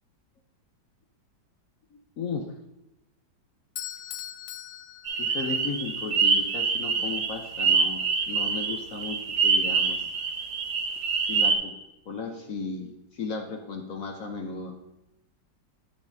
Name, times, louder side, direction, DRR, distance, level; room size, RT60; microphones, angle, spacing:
voice 1, 1.9-2.5 5.2-10.1 11.3-11.7 12.1-14.8, left 4 dB, 60° left, 3 dB, 1.0 m, -35 dB
Bell / Doorbell, 3.8-5.8, left 12 dB, 85° left, 1.3 m, -40 dB
sound 1, 5.0-11.5, right 5 dB, 65° right, 1.4 m, -25 dB
9.0 x 8.3 x 2.7 m, 0.94 s
omnidirectional pair, 2.0 m